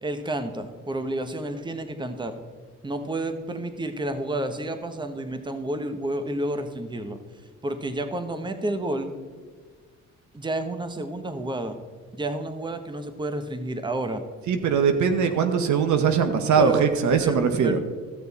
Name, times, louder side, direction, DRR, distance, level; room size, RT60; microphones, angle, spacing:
voice 1, 0.0-2.4 2.8-7.2 7.6-9.1 10.3-11.8 12.1-14.2 16.6-16.8 17.2-17.8, right 1 dB, 15° right, 8 dB, 1.0 m, -30 dB
voice 2, 14.5-17.8, right 6 dB, 70° right, 8 dB, 1.1 m, -21 dB
14.0 x 6.8 x 4.2 m, 1.5 s
cardioid pair, 90°, 30 cm